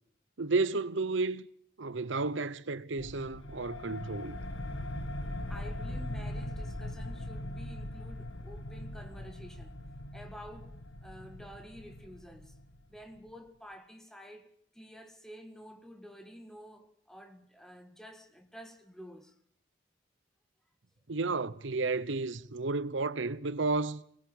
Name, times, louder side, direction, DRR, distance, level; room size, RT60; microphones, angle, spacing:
voice 1, 0.4-1.4 1.8-4.4 21.1-24.0, right 3 dB, 75° right, 0.9 m, -32 dB
sound 1, 3.0-13.2, left 1 dB, 85° left, 1.8 m, -40 dB
voice 2, 5.5-9.8 10.1-12.6 12.9-19.4, equal, ahead, 1.9 m, -50 dB
24.0 x 20.5 x 7.0 m
head